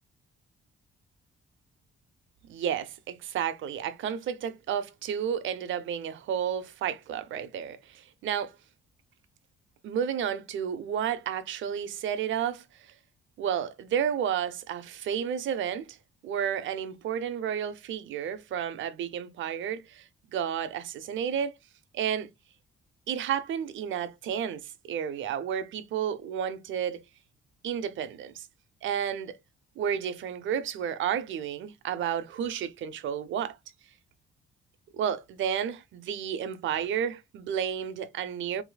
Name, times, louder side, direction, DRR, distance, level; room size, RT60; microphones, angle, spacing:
voice 1, 2.5-8.5 9.8-12.6 13.4-16.0 16.2-21.5 21.9-22.3 23.1-27.0 27.6-28.5 28.8-29.4 29.8-33.6 34.9-38.6, right 8 dB, 75° right, 0.7 m, -31 dB
4.8 x 2.9 x 2.3 m
cardioid pair, 90°, 20 cm